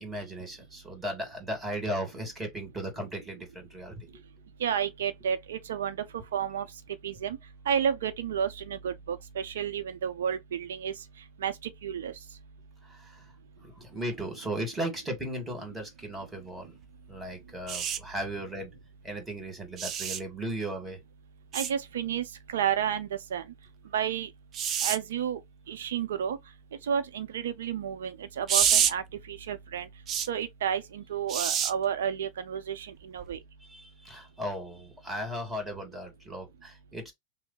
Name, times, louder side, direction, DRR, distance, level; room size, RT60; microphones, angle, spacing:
voice 1, 0.0-4.1 12.8-16.8 17.1-21.0 33.6-37.1, right 1 dB, 10° right, 2.0 m, -36 dB
voice 2, 4.6-6.0 6.3-6.6 7.0-7.4 7.7-10.9 11.4-11.5 11.8-12.1 21.5-22.2 22.5-23.4 23.9-24.3 24.8-25.4 25.7-26.4 26.9-29.9 30.3-33.4, right 8 dB, 85° right, 0.6 m, -31 dB
sound 1, 17.7-18.0 19.8-20.2 21.5-21.7 24.5-25.0 28.5-28.9 30.1-30.3 31.3-31.7 33.2-33.4, right 8 dB, 35° right, 0.5 m, -26 dB
3.1 x 2.0 x 4.0 m
hypercardioid pair, 115°, 0 cm